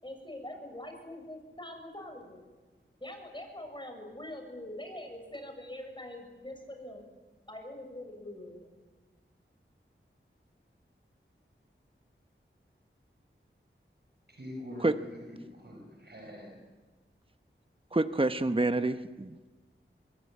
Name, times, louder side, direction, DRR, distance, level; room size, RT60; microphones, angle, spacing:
voice 1, 0.0-2.4 3.0-7.0 7.5-8.7, left 1 dB, 25° left, 4 dB, 6.9 m, -43 dB
voice 2, 14.3-16.6, left 1 dB, 55° right, 2 dB, 5.3 m, -44 dB
voice 3, 17.9-19.5, right 2 dB, 25° right, 10 dB, 1.1 m, -28 dB
26.0 x 21.5 x 8.5 m, 1.3 s
wide cardioid pair, 55°, 21 cm